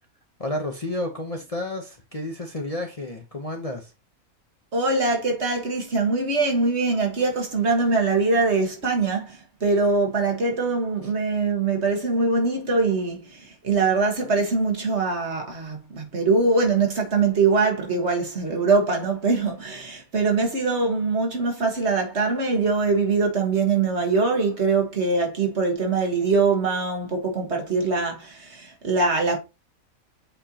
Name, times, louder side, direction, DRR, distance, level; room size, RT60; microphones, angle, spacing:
voice 1, 0.4-3.9, left 1 dB, 30° left, 0.9 m, -31 dB
voice 2, 4.7-29.4, right 3 dB, 50° right, 1.8 m, -23 dB
7.8 x 4.5 x 2.9 m
omnidirectional pair, 1.5 m